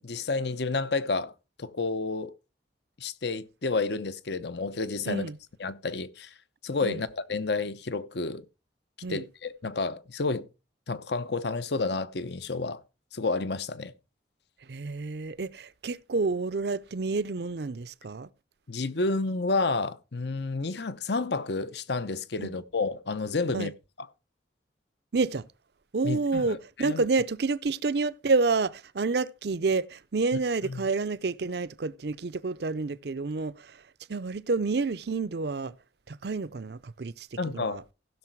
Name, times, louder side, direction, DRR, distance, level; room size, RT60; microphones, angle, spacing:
voice 1, 0.0-1.3 1.6-2.3 3.0-5.3 5.6-6.3 6.6-8.4 9.1-10.5 10.9-12.8 13.1-13.9 18.7-23.7 24.0-24.1 26.0-27.1 30.6-30.8 37.4-37.8, left 3 dB, 65° left, 0.8 m, -30 dB
voice 2, 5.1-5.4 6.8-7.0 9.0-9.2 14.7-18.3 22.4-22.5 23.5-23.7 25.1-25.5 25.9-33.8 34.1-35.7 36.1-37.3 37.5-37.8, right 4 dB, 60° right, 0.6 m, -29 dB
15.5 x 6.5 x 4.6 m
head